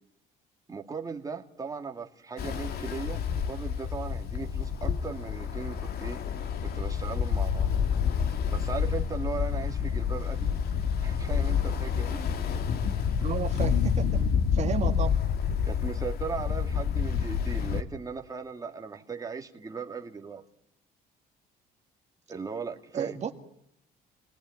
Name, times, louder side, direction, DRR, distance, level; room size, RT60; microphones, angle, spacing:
voice 1, 0.7-6.2 6.6-7.7 8.5-10.5 11.0-12.2 15.7-20.4 22.3-23.2, right 5 dB, 20° right, 3 dB, 2.4 m, -38 dB
Ocean, 2.4-17.8, left 7 dB, 65° left, 2.6 m, -28 dB
voice 2, 13.2-14.1 14.5-15.1 22.9-23.3, right 7 dB, 45° right, 4 dB, 2.1 m, -32 dB
28.0 x 19.5 x 9.9 m, 0.73 s
cardioid pair, 110°, 17 cm